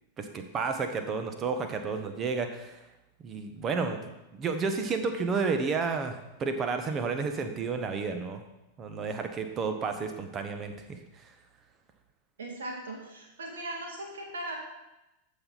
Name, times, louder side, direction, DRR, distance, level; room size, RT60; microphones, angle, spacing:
voice 1, 0.2-2.8 3.2-4.0 4.3-8.4 8.8-11.3, right 4 dB, 25° right, 7 dB, 1.2 m, -31 dB
voice 2, 12.4-14.6, right 1 dB, 65° right, 0 dB, 2.3 m, -38 dB
14.0 x 5.4 x 4.1 m, 0.96 s
figure-of-eight pair, 90°, 0 cm